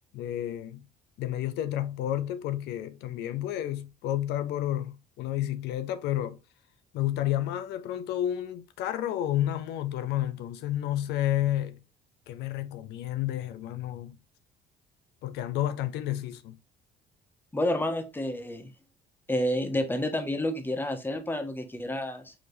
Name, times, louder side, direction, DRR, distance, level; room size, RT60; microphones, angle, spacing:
voice 1, 0.1-0.9 1.2-6.4 6.9-11.8 12.3-14.2 15.2-16.6, left 12 dB, 85° left, 0.5 m, -31 dB
voice 2, 17.5-18.7 19.3-22.3, left 1 dB, 10° left, 0.9 m, -29 dB
4.9 x 3.1 x 2.6 m
cardioid pair, 110°, 17 cm